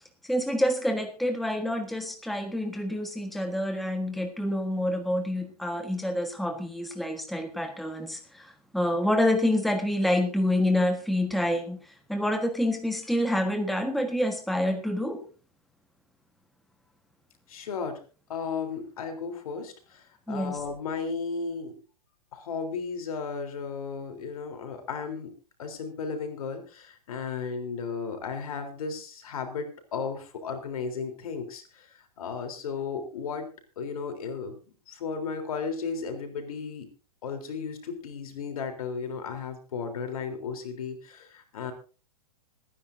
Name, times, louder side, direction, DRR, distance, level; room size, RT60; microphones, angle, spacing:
voice 1, 0.2-15.3 20.3-20.6, left 1 dB, ahead, 5 dB, 1.4 m, -27 dB
voice 2, 17.5-18.0 18.3-21.8 22.3-25.3 25.6-33.5 33.8-34.6 34.9-36.9 37.2-41.7, left 5 dB, 65° left, 6 dB, 3.6 m, -34 dB
26.5 x 10.0 x 2.7 m, 0.34 s
hypercardioid pair, 115°, 20 cm